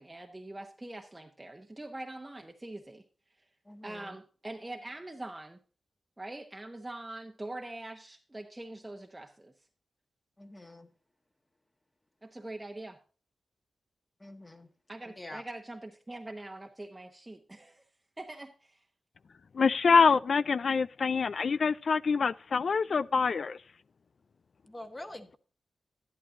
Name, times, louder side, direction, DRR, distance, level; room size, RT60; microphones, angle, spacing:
voice 1, 0.0-3.0 3.8-5.6 6.2-9.5 12.2-13.0 14.9-17.8 18.2-18.8, right 2 dB, 15° right, 1.0 m, -43 dB
voice 2, 3.6-4.2 10.4-10.9 14.2-14.7 15.0-15.4 24.7-25.4, left 1 dB, 20° left, 1.5 m, -46 dB
voice 3, 19.5-23.6, left 5 dB, 60° left, 0.4 m, -25 dB
11.5 x 11.0 x 2.6 m
cardioid pair, 80°, 0 cm